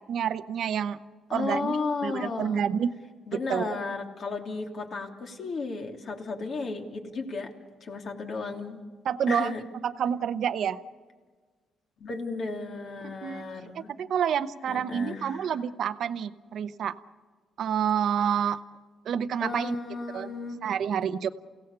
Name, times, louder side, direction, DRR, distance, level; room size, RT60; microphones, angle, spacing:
voice 1, 0.1-1.0 1.3-2.9 3.3-3.8 9.0-9.5 9.8-10.8 13.2-13.4 13.7-16.9 17.6-18.6 19.0-19.7 20.1-20.3 20.6-21.3, right 8 dB, 65° right, 12 dB, 0.9 m, -28 dB
voice 2, 1.3-2.6 3.3-7.5 7.8-8.8 9.3-9.6 12.0-13.9 14.7-15.4 19.4-20.6, left 3 dB, 55° left, 2 dB, 3.0 m, -34 dB
29.0 x 17.0 x 6.8 m, 1.4 s
cardioid pair, 90°, 0 cm